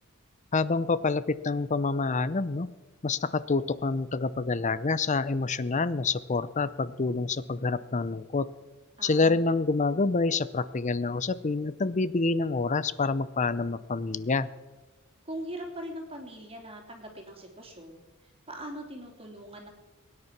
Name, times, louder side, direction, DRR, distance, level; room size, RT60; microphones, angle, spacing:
voice 1, 0.5-2.7 3.0-8.5 9.0-14.5, left 3 dB, 35° left, 16 dB, 0.6 m, -27 dB
voice 2, 9.0-9.6 15.2-19.7, right 1 dB, 25° right, 2 dB, 3.0 m, -41 dB
22.5 x 9.8 x 6.0 m, 1.2 s
head